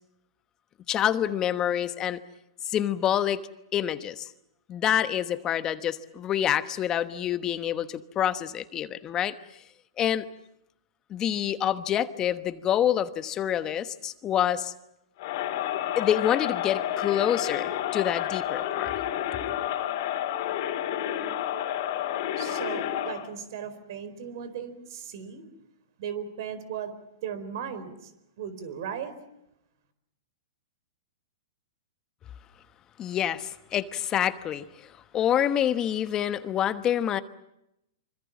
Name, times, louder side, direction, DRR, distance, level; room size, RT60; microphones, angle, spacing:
voice 1, 0.9-2.2 2.6-3.4 3.7-4.3 4.7-9.4 10.0-10.3 11.1-14.7 16.0-18.9 33.0-37.2, left 10 dB, 25° left, 12 dB, 1.1 m, -27 dB
Crowd, 15.2-23.3, left 11 dB, 55° left, 3.5 m, -30 dB
voice 2, 22.4-25.4 26.0-26.9 27.2-28.1 28.4-29.1, right 8 dB, 60° right, 13 dB, 4.4 m, -36 dB
25.5 x 25.0 x 7.3 m, 0.85 s
hypercardioid pair, 120°, 2 cm